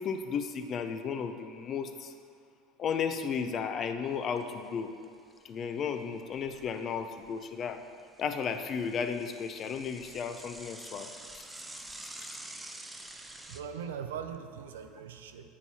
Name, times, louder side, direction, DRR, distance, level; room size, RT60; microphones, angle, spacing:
voice 1, 0.0-2.1 2.8-4.9 5.4-7.8 8.2-11.1 11.3-11.5, left 6 dB, 40° left, 8 dB, 0.5 m, -34 dB
Bicycle / Mechanisms, 4.1-4.7 5.0-5.1 5.4-5.5 6.1-7.3 7.7-13.6, right 1 dB, 10° right, 0.5 m, -47 dB
voice 2, 13.5-15.5, right 7 dB, 90° right, 8 dB, 0.5 m, -40 dB
8.5 x 4.6 x 4.2 m, 2.2 s
supercardioid pair, 100°, 0 cm